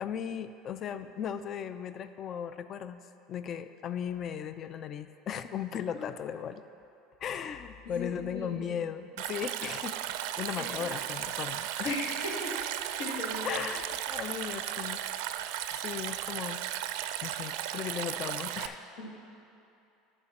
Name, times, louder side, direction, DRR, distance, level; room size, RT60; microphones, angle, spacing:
voice 1, 0.0-3.0 3.3-6.6 7.2-10.0 10.4-12.0 13.4-15.0 15.7-16.6 17.2-18.8, left 8 dB, 40° left, 12 dB, 0.3 m, -37 dB
voice 2, 7.8-8.6 10.5-10.9 11.8-12.6 12.9-13.6 19.0-19.1, left 2 dB, 80° left, -1 dB, 1.6 m, -37 dB
Stream, 9.2-18.7, right 11 dB, 75° right, 0.4 m, -35 dB
9.9 x 4.3 x 7.0 m, 2.8 s
supercardioid pair, 115°, 0 cm